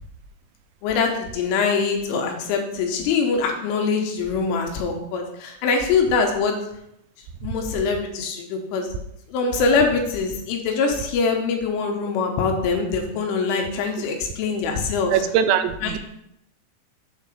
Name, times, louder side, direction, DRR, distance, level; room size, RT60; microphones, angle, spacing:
voice 1, 0.8-6.5 7.4-8.9 9.3-15.2 15.8-15.9, left 4 dB, 80° left, 3 dB, 3.2 m, -23 dB
voice 2, 15.1-16.0, right 8 dB, 85° right, 9 dB, 3.2 m, -21 dB
7.6 x 3.7 x 6.4 m, 0.80 s
omnidirectional pair, 6.0 m